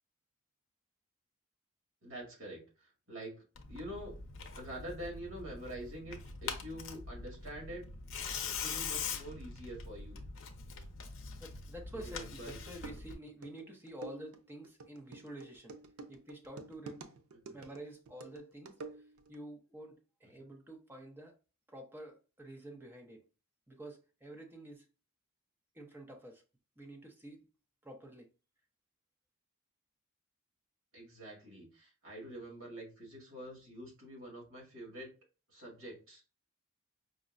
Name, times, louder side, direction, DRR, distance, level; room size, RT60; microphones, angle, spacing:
voice 1, 2.0-4.2 4.6-7.9 8.5-10.2 11.9-12.6 17.3-17.6 20.4-20.5 30.9-35.1 35.5-36.2, right 1 dB, 75° right, 1.8 m, -46 dB
Tearing, 3.5-13.1, left 5 dB, 65° left, 0.6 m, -43 dB
voice 2, 11.4-15.8 16.1-17.0 17.5-18.8 19.3-21.3 21.7-23.2 23.7-24.9 25.7-26.4 26.8-27.5 27.8-28.3, right 1 dB, 10° right, 0.6 m, -49 dB
sound 1, 12.7-19.4, right 3 dB, 90° right, 0.5 m, -50 dB
5.1 x 2.1 x 2.4 m
head